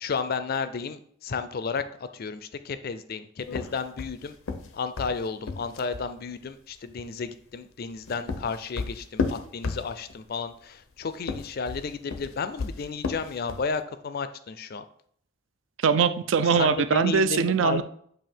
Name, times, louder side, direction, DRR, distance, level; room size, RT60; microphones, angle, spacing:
voice 1, 0.0-4.4 4.7-14.8 16.5-17.8, left 5 dB, 50° left, 11 dB, 0.4 m, -32 dB
sound 1, 3.5-6.1 7.8-10.2 11.1-13.7, left 4 dB, 85° left, 0.6 m, -33 dB
voice 2, 15.8-17.8, right 6 dB, 65° right, 11 dB, 0.4 m, -22 dB
7.6 x 2.8 x 4.4 m, 0.62 s
head